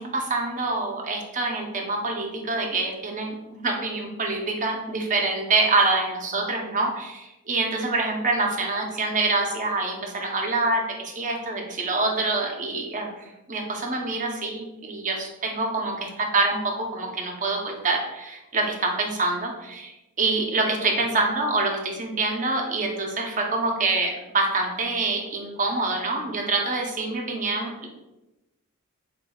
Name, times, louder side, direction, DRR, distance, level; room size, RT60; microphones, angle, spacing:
voice 1, 0.0-27.9, right 3 dB, 35° right, 1 dB, 0.7 m, -26 dB
7.7 x 2.6 x 2.3 m, 1.0 s
head